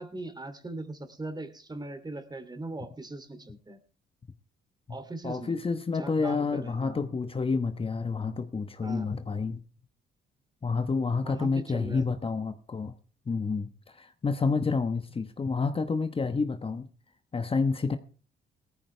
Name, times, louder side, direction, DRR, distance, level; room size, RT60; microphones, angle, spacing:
voice 1, 0.0-3.8 4.9-5.6 5.9-7.0 8.8-9.1 11.2-12.0, right 2 dB, 20° right, 9 dB, 2.8 m, -40 dB
voice 2, 5.2-9.6 10.6-12.9 13.3-16.9 17.3-18.0, left 4 dB, 30° left, 9 dB, 1.1 m, -29 dB
17.5 x 14.0 x 3.3 m, 0.37 s
cardioid pair, 90°, 20 cm